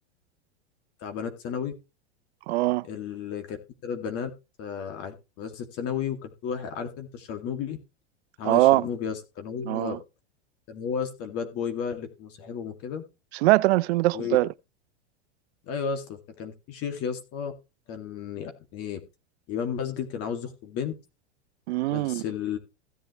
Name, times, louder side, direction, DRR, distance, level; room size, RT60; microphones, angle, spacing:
voice 1, 1.0-1.7 2.8-3.6 3.8-4.3 4.6-7.8 8.4-10.0 10.7-13.0 14.1-14.4 15.6-17.5 17.9-19.0 19.5-20.9 21.9-22.6, left 7 dB, 45° left, 2.3 m, -33 dB
voice 2, 2.5-2.9 8.4-8.8 9.7-10.0 13.4-14.5 21.7-22.2, right 18 dB, 65° right, 0.7 m, -22 dB
16.0 x 7.9 x 3.1 m
hypercardioid pair, 120°, 34 cm